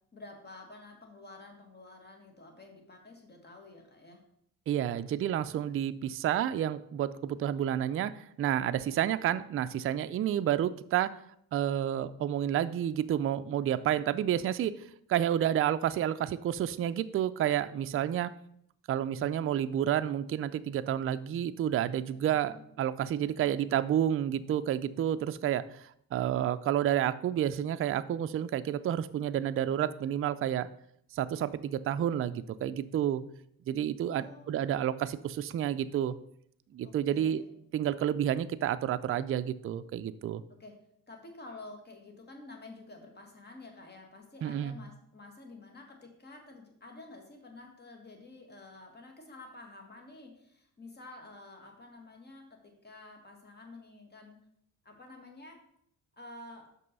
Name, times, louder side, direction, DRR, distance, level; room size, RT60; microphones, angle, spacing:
voice 1, 0.1-4.2 22.1-22.6 23.2-23.6 34.1-34.9 36.8-37.5 40.6-40.8 41.1-54.4 54.8-55.6 56.2-56.7, left 2 dB, 30° left, 3 dB, 1.8 m, -50 dB
voice 2, 4.7-11.1 11.5-14.7 15.1-18.3 18.9-25.8 26.1-30.7 31.1-33.2 33.7-36.1 36.7-37.4 37.7-40.4 44.4-44.8, right 10 dB, 40° right, 11 dB, 0.4 m, -30 dB
6.1 x 5.4 x 5.4 m, 0.70 s
cardioid pair, 110°, 36 cm